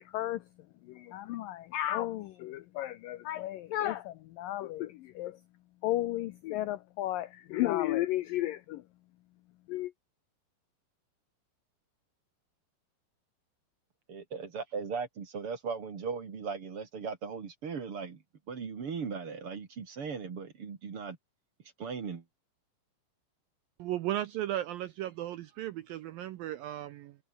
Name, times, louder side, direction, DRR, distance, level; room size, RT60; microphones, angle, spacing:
voice 1, 0.0-5.4 5.8-8.8 9.7-9.9, left 15 dB, 85° left, 2.0 m, -34 dB
voice 2, 14.1-18.2 18.5-21.2 21.8-22.2, right 5 dB, 40° right, 2.6 m, -38 dB
voice 3, 23.8-27.2, right 13 dB, 75° right, 2.2 m, -35 dB
omnidirectional pair, 5.0 m